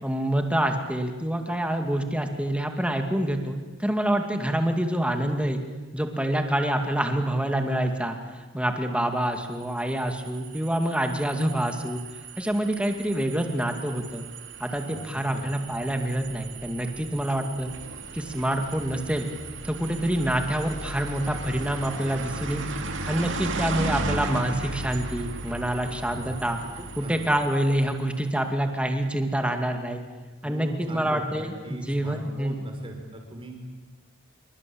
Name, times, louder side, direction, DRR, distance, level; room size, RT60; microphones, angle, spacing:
voice 1, 0.0-5.6 5.9-8.2 8.5-12.0 12.4-14.2 14.6-17.8 18.1-19.3 19.6-22.7 23.1-26.6 27.0-30.0 30.4-32.6, right 1 dB, 5° right, 5 dB, 2.3 m, -26 dB
sound 1, 9.6-28.1, right 3 dB, 65° right, 2.5 m, -36 dB
voice 2, 14.9-15.6 25.9-26.4 26.8-27.2 30.4-33.6, right 1 dB, 25° right, 3 dB, 5.3 m, -39 dB
26.5 x 24.0 x 8.7 m, 1.3 s
head